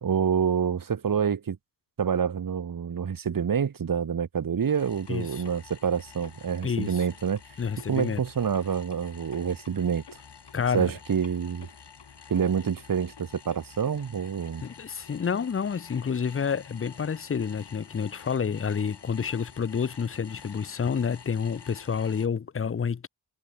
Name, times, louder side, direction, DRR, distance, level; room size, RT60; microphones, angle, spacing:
voice 1, 0.0-1.6 2.0-7.4 7.9-10.0 10.7-11.7 12.3-14.6, right 7 dB, 55° right, 1.1 m, -27 dB
sound 1, 4.6-22.3, left 6 dB, 75° left, 4.7 m, -49 dB
voice 2, 5.1-5.4 6.6-7.0 7.6-8.2 10.5-10.9 14.6-23.1, left 6 dB, 35° left, 0.6 m, -29 dB
wide cardioid pair, 100°, 41 cm